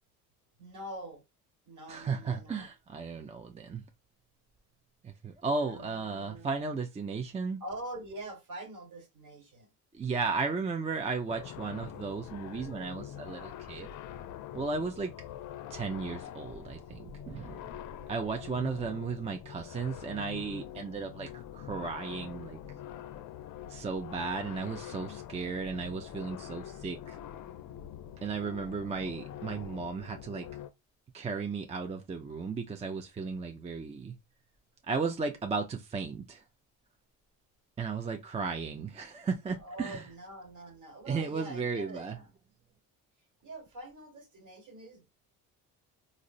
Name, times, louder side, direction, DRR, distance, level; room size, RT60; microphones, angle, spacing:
voice 1, 0.6-1.2 1.6-2.7 5.6-6.5 7.6-9.7 39.6-42.3 43.4-45.1, right 1 dB, 50° right, 1.4 m, -44 dB
voice 2, 1.9-3.8 5.0-7.6 9.9-13.9 14.5-15.1 15.7-17.7 18.1-22.6 23.7-27.2 28.2-30.5 31.1-34.2 34.8-36.4 37.8-40.1 41.1-42.2, right 4 dB, 20° right, 0.4 m, -35 dB
sound 1, 11.3-30.7, left 11 dB, 55° left, 0.5 m, -45 dB
3.6 x 2.1 x 2.5 m
supercardioid pair, 70°, 39 cm